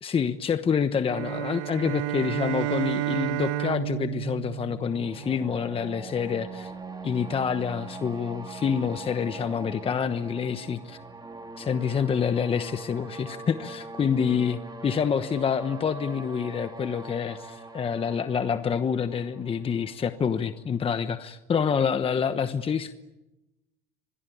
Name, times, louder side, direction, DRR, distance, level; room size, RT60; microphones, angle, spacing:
voice 1, 0.0-6.7 7.0-11.0 11.6-22.9, left 7 dB, 30° left, 10 dB, 1.1 m, -27 dB
sound 1, 1.1-5.5, right 15 dB, 85° right, 1.3 m, -31 dB
sound 2, 4.8-20.6, right 3 dB, 20° right, 4.1 m, -42 dB
25.5 x 21.5 x 9.4 m, 1.0 s
cardioid pair, 115°, 20 cm